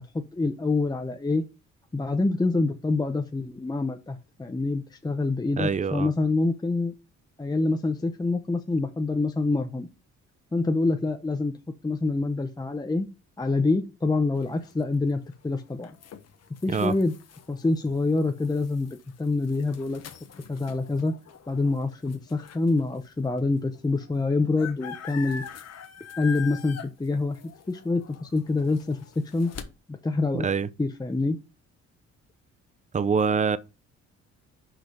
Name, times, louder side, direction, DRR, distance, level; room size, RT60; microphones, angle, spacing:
voice 1, 0.0-1.4 1.9-6.9 7.4-9.9 10.5-11.5 11.8-13.1 13.4-15.9 16.6-17.1 17.5-20.0 20.5-21.1 21.5-25.4 26.2-27.4 27.7-29.0 29.3-29.5 29.9-30.5 30.8-31.4, left 3 dB, 15° left, 0.8 m, -26 dB
voice 2, 5.6-6.1 16.7-16.9 30.3-30.7 32.9-33.6, right 5 dB, 25° right, 0.6 m, -25 dB
sound 1, 14.3-22.8 23.4-23.5 23.7-29.6, left 7 dB, 55° left, 1.3 m, -44 dB
6.3 x 5.0 x 5.1 m
cardioid pair, 90°, 30 cm